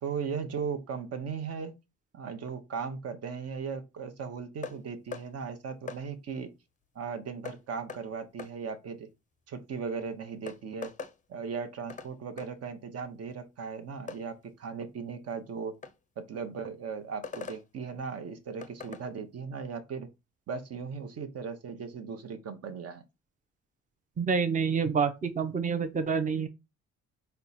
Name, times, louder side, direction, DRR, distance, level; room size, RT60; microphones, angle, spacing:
voice 1, 0.0-1.7 2.1-6.5 6.9-9.1 9.5-10.9 11.3-15.7 16.2-20.1 20.5-23.0, right 5 dB, 55° right, 0.9 m, -37 dB
sound 1, 4.6-4.8 5.1-5.3 5.9-6.0 7.5-7.6 7.9-8.0 8.4-8.5 9.9-10.0 10.5-11.2 11.9-12.1 12.4-12.5 14.1-14.2 15.8-16.0 17.2-17.6 18.6-19.0, left 5 dB, 25° left, 0.5 m, -40 dB
voice 2, 24.2-26.5, right 5 dB, 25° right, 0.7 m, -28 dB
4.3 x 2.2 x 4.1 m
cardioid pair, 90°, 30 cm